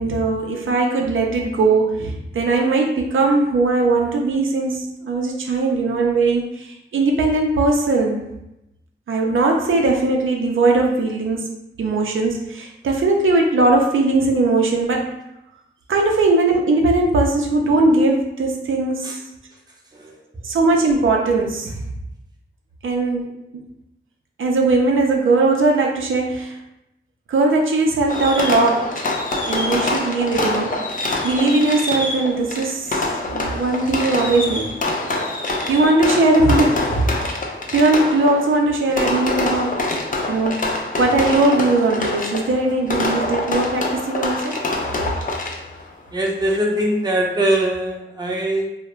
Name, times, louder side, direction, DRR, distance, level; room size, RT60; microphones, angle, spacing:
voice 1, 0.0-8.2 9.1-11.5 11.8-15.1 15.9-19.2 20.4-21.8 22.8-23.3 24.4-26.6 27.3-28.9 29.5-30.8 31.2-33.0 33.3-34.7 35.7-37.2 37.7-39.8 40.3-44.6, right 2 dB, 75° right, 0 dB, 0.4 m, -19 dB
Fireworks, 28.1-45.9, left 2 dB, 40° left, 0.5 m, -25 dB
voice 2, 46.1-48.7, right 1 dB, 20° right, -2 dB, 0.5 m, -22 dB
2.4 x 2.1 x 2.9 m, 0.85 s
wide cardioid pair, 85°, 21 cm